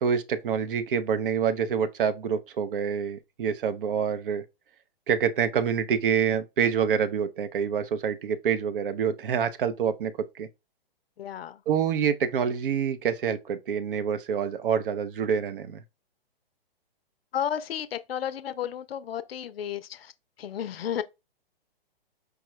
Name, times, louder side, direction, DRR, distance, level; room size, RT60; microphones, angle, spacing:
voice 1, 0.0-4.4 5.1-10.5 11.7-15.8, right 7 dB, 60° right, 0.6 m, -27 dB
voice 2, 11.2-11.6 17.3-20.1 20.4-21.0, left 9 dB, 75° left, 0.5 m, -32 dB
4.8 x 2.3 x 3.1 m
hypercardioid pair, 135°, 30 cm